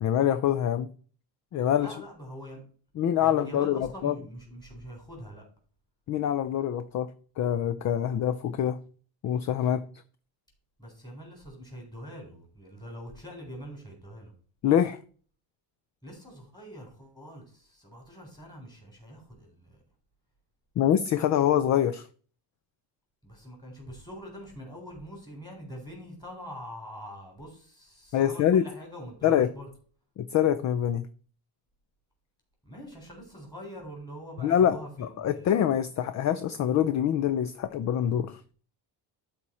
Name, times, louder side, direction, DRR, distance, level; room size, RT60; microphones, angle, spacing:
voice 1, 0.0-0.9 1.5-1.9 3.0-4.1 6.1-7.1 7.4-8.8 9.2-9.8 14.6-15.0 20.8-22.1 28.1-28.7 29.2-29.5 30.2-31.1 34.4-38.4, left 10 dB, 40° left, 0.5 m, -25 dB
voice 2, 1.8-2.6 3.2-5.5 10.8-14.3 16.0-19.8 23.2-29.7 32.7-35.5, equal, 10° left, 3.7 m, -44 dB
12.0 x 4.3 x 4.3 m
cardioid pair, 140°, 45 cm